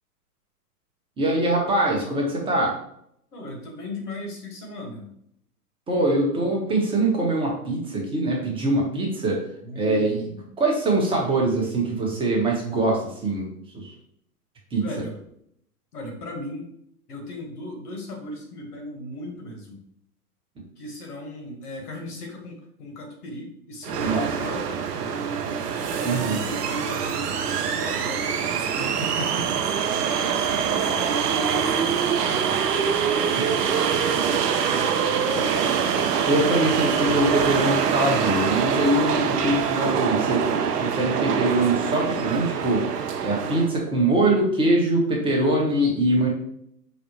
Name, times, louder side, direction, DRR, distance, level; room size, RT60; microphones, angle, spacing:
voice 1, 1.2-2.7 5.9-9.4 9.8-10.2 10.6-13.5 13.7-13.9 14.7-14.8 24.0-24.2 26.0-26.4 28.8-29.5 36.3-40.4 40.8-42.8 43.2-46.3, right 2 dB, 10° right, -2 dB, 0.8 m, -23 dB
voice 2, 3.3-5.1 9.6-10.5 14.8-15.1 15.9-16.7 17.1-19.8 20.8-28.9 29.9-35.6, left 1 dB, 70° left, 1 dB, 1.4 m, -37 dB
sound 1, 23.8-43.7, right 7 dB, 80° right, 0.6 m, -24 dB
5.0 x 2.0 x 3.0 m, 0.71 s
hypercardioid pair, 110°, 47 cm